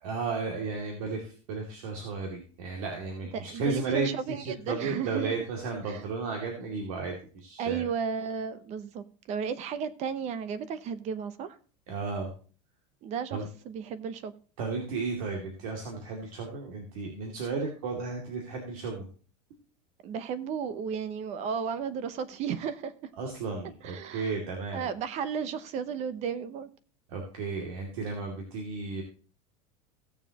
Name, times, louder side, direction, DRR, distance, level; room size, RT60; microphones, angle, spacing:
voice 1, 0.0-7.8 11.9-12.3 13.3-13.5 14.6-19.1 23.2-24.9 27.1-29.0, right 4 dB, 75° right, 2.5 m, -34 dB
voice 2, 3.3-5.3 5.9-6.0 7.6-11.6 13.0-13.4 13.7-14.3 20.0-23.1 23.8-24.3 24.7-26.7, right 7 dB, 35° right, 0.8 m, -34 dB
16.5 x 7.2 x 3.0 m
supercardioid pair, 150°, 18 cm